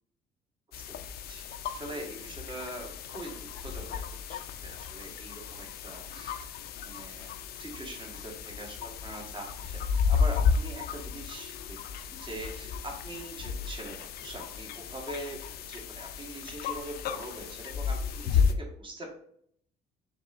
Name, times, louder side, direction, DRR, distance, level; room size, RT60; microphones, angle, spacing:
sound 1, 0.7-18.5, left 6 dB, 65° left, 0.5 m, -33 dB
voice 1, 1.3-4.0 4.3-6.5 6.8-11.8 12.1-15.4 15.7-19.1, right 1 dB, 30° right, 1 dB, 1.3 m, -43 dB
5.3 x 3.5 x 2.4 m, 0.66 s
cardioid pair, 110°, 17 cm